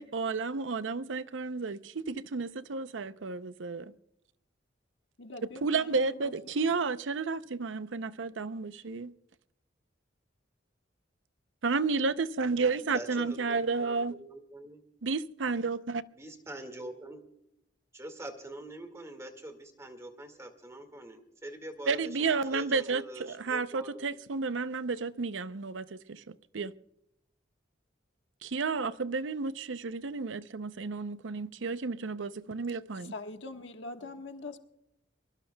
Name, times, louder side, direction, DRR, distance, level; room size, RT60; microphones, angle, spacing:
voice 1, 0.0-3.9 5.6-9.1 11.6-14.1 15.0-16.0 21.9-26.7 28.4-33.1, right 4 dB, 85° right, 0.6 m, -32 dB
voice 2, 5.2-6.3 33.1-34.7, left 2 dB, 75° left, 1.3 m, -43 dB
voice 3, 12.8-14.8 16.1-17.2 17.9-24.0, right 1 dB, 15° right, 1.9 m, -44 dB
23.5 x 23.0 x 2.3 m
head